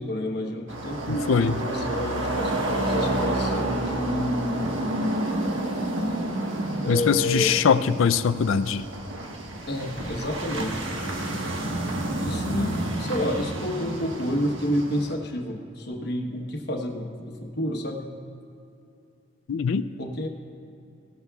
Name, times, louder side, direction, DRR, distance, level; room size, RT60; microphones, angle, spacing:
voice 1, 0.0-4.7 6.8-7.6 9.7-10.8 12.2-18.1 20.0-20.3, equal, 55° left, 2 dB, 1.1 m, -29 dB
sound 1, 0.7-15.1, right 1 dB, 70° right, 1.4 m, -29 dB
voice 2, 1.1-1.6 6.9-8.9 19.5-19.9, left 6 dB, 80° left, 14 dB, 0.4 m, -22 dB
17.5 x 12.5 x 2.4 m, 2.7 s
head